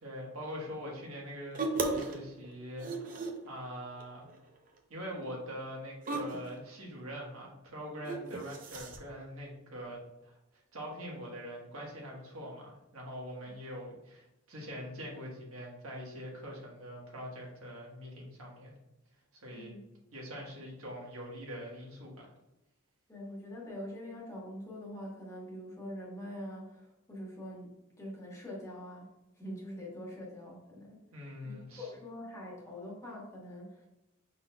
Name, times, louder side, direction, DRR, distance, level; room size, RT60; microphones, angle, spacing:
voice 1, 0.0-4.3 4.9-18.7 19.4-19.7 20.1-22.3 31.1-31.9, equal, 75° right, -2 dB, 1.3 m, -43 dB
sound 1, 1.5-2.2 2.4-3.5 4.0-4.4 4.7-4.8 6.0-6.5 8.0-9.0, right 3 dB, 40° right, 0.6 m, -35 dB
voice 2, 19.5-19.8 23.1-27.7 28.0-29.1 29.3-33.9, left 1 dB, 15° left, -4 dB, 1.3 m, -44 dB
5.7 x 3.9 x 2.2 m, 0.94 s
head